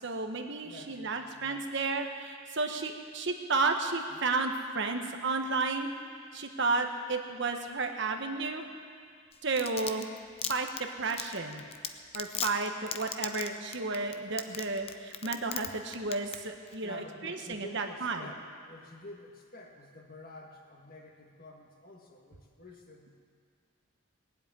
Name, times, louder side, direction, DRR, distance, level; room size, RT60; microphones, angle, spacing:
voice 1, 0.0-5.9 6.3-8.7 9.4-10.1 10.5-11.6 12.1-18.3, right 3 dB, 55° right, 4 dB, 1.2 m, -32 dB
voice 2, 0.6-1.6 16.8-23.2, left 2 dB, 45° left, 2 dB, 1.7 m, -49 dB
Domestic sounds home sounds, 9.3-15.7 15.9-16.4 16.7-16.8, left 8 dB, 30° left, 0.6 m, -35 dB
19.5 x 7.9 x 9.4 m, 2.1 s
head